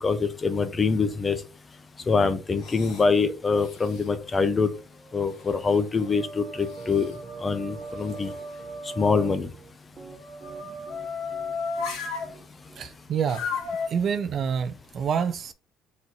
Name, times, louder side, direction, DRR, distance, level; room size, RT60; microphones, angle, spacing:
voice 1, 0.0-1.4 2.1-4.7 5.1-7.1 7.4-8.3 9.0-9.5, left 4 dB, 20° left, 0.5 m, -24 dB
sound 1, 2.5-3.1 3.5-4.2 5.0-6.2 6.6-7.2 7.6-9.2, left 4 dB, 60° left, 1.7 m, -51 dB
sound 2, 4.0-4.8 5.3-9.3 10.1-12.3 13.3-13.9, left 3 dB, 85° left, 2.0 m, -35 dB
Piano, 6.8-13.2, right 5 dB, 25° right, 0.9 m, -47 dB
voice 2, 12.8-13.4 13.9-15.5, right 7 dB, 45° right, 0.4 m, -27 dB
4.1 x 2.5 x 4.5 m
cardioid pair, 135°, 0 cm